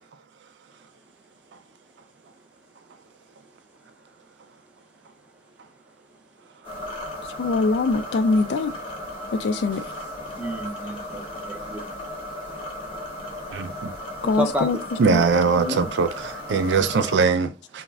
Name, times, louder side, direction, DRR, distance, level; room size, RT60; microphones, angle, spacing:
sound 1, 6.6-17.2, left 1 dB, 30° left, 0.7 m, -35 dB
voice 1, 7.4-8.7 9.3-9.8 14.2-14.8 15.1-15.2, left 3 dB, 80° left, 0.3 m, -22 dB
voice 2, 10.4-12.0 14.4-14.7 15.6-15.9, left 1 dB, 5° right, 0.5 m, -30 dB
voice 3, 13.5-13.9 15.0-17.8, right 4 dB, 85° right, 0.4 m, -22 dB
2.3 x 2.1 x 3.3 m
head